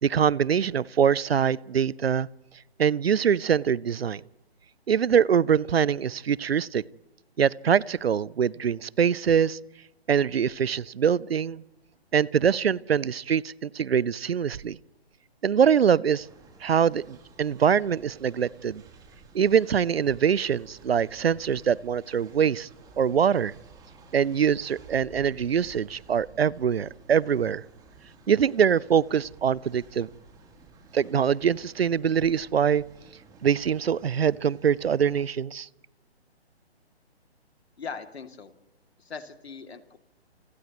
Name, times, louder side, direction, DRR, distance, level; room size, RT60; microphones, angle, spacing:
voice 1, 0.0-2.3 2.8-4.2 4.9-6.8 7.4-9.6 10.1-11.6 12.1-14.8 15.4-16.3 16.6-18.8 19.3-22.7 23.0-23.5 24.1-27.6 28.3-30.1 30.9-32.8 33.4-35.7, right 7 dB, 65° right, 24 dB, 0.7 m, -23 dB
Train, 16.2-35.2, right 4 dB, 10° right, 3.4 m, -53 dB
voice 2, 37.8-38.5 39.0-40.0, left 5 dB, 70° left, 6 dB, 2.7 m, -40 dB
29.5 x 29.0 x 3.1 m, 0.96 s
figure-of-eight pair, 140°, 32 cm